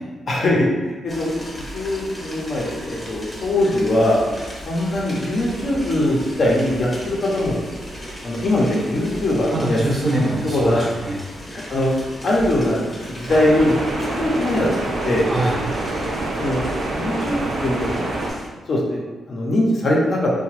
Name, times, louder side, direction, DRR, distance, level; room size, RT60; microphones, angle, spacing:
voice 1, 0.3-1.3 1.6-4.2 4.6-7.6 8.2-9.9 10.4-10.9 11.5-11.9 12.2-15.3 16.4-16.6 16.9-18.0 18.7-19.0 19.3-20.3, left 1 dB, 45° left, -3 dB, 0.6 m, -21 dB
sound 1, 1.1-18.5, equal, 20° left, 0.8 m, -36 dB
voice 2, 9.5-11.2 15.2-15.6, right 1 dB, 25° right, -3 dB, 0.6 m, -23 dB
sound 2, 13.3-18.3, right 2 dB, 85° right, 0.6 m, -26 dB
2.9 x 2.1 x 3.0 m, 1.3 s
wide cardioid pair, 145°, 0 cm